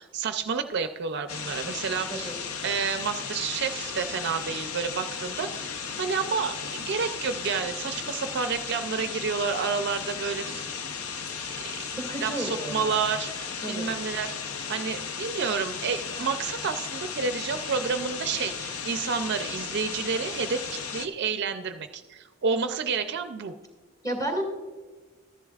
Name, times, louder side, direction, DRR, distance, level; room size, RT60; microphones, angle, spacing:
voice 1, 0.0-10.6 12.2-14.4 14.7-23.5, right 5 dB, 50° right, 8 dB, 0.4 m, -30 dB
sound 1, 1.3-21.1, left 6 dB, 85° left, 0.7 m, -35 dB
voice 2, 11.8-13.0 13.6-13.9 24.0-24.4, right 1 dB, 15° left, 2 dB, 2.2 m, -32 dB
14.0 x 10.5 x 2.4 m, 1.3 s
head